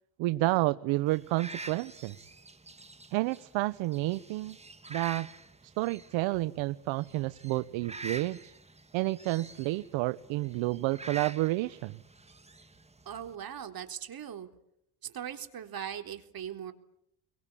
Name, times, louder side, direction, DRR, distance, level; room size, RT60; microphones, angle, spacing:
voice 1, 0.2-2.2 3.1-4.6 4.9-5.3 5.8-8.5 8.9-12.0, right 19 dB, 70° right, 14 dB, 1.1 m, -30 dB
sound 1, 1.1-13.4, right 3 dB, 15° right, 1.9 m, -47 dB
voice 2, 13.1-14.5 15.0-16.7, right 9 dB, 45° right, 6 dB, 3.9 m, -40 dB
30.0 x 23.0 x 8.6 m, 0.77 s
supercardioid pair, 85°, 48 cm